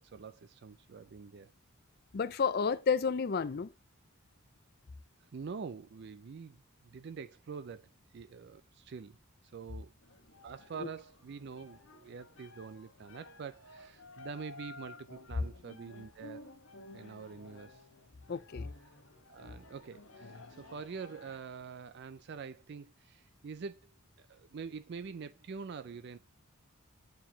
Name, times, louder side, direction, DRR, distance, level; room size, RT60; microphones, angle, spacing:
voice 1, 0.0-1.5 5.2-9.2 9.5-9.9 10.4-16.5 16.9-17.8 18.9-19.0 19.3-23.9 24.2-26.2, right 5 dB, 50° right, 0.4 m, -45 dB
voice 2, 2.1-3.7 10.8-10.9 18.3-18.7, left 5 dB, 45° left, 0.4 m, -31 dB
sound 1, 10.0-21.4, left 2 dB, 70° left, 1.2 m, -54 dB
9.1 x 4.5 x 2.8 m
head